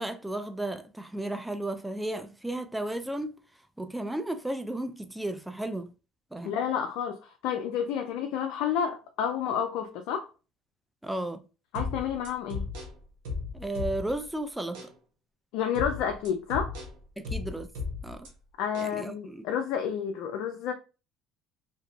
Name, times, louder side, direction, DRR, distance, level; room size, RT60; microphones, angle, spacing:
voice 1, 0.0-3.4 3.8-5.9 6.3-6.6 11.0-11.4 13.5-14.9 17.2-17.7 18.0-18.3 18.8-19.4, right 1 dB, 5° right, 0.4 m, -34 dB
voice 2, 6.4-10.3 11.7-12.7 15.5-16.7 18.6-20.7, left 8 dB, 70° left, 0.3 m, -30 dB
sound 1, 11.7-14.3 14.7-14.9 15.7-18.3 18.7-18.9, left 4 dB, 75° right, 0.8 m, -36 dB
2.6 x 2.4 x 2.3 m
hypercardioid pair, 70°, 0 cm